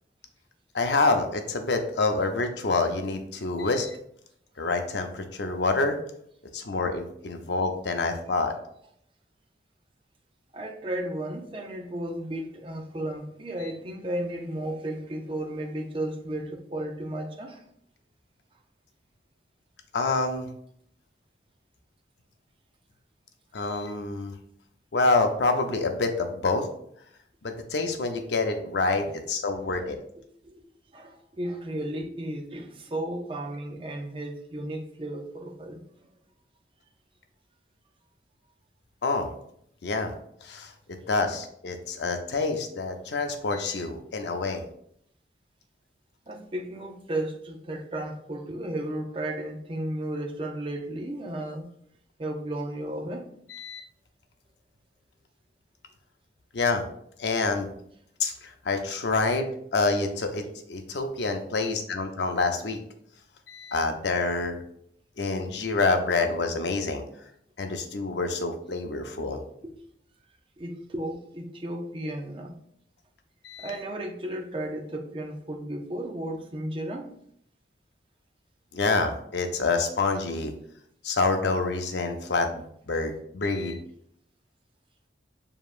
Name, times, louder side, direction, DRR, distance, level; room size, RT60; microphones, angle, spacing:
voice 1, 0.7-4.0 4.6-6.0 6.5-8.5 13.6-13.7 19.9-20.5 23.5-24.3 24.9-26.7 27.4-30.0 39.0-39.3 39.8-40.1 40.4-44.6 53.5-53.8 56.5-56.9 57.2-57.7 58.2-62.8 63.5-64.6 65.2-67.0 67.6-69.4 73.4-73.8 78.7-80.5 81.0-83.8, left 3 dB, 80° left, 0.6 m, -27 dB
voice 2, 10.5-17.6 30.4-30.6 30.9-35.8 46.3-51.7 52.2-53.3 69.6-69.7 70.6-72.5 73.6-77.1, right 1 dB, 30° right, 0.5 m, -34 dB
6.8 x 2.8 x 2.4 m
head